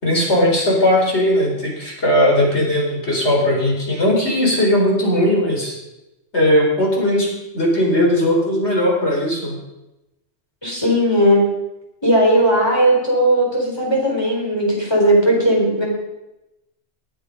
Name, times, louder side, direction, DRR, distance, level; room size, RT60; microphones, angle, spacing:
voice 1, 0.0-5.8 6.3-9.6, left 1 dB, 70° left, -1 dB, 4.6 m, -18 dB
voice 2, 10.6-11.4 12.0-15.8, right 1 dB, 20° left, -2 dB, 4.3 m, -16 dB
19.0 x 9.8 x 5.2 m, 0.95 s
omnidirectional pair, 1.2 m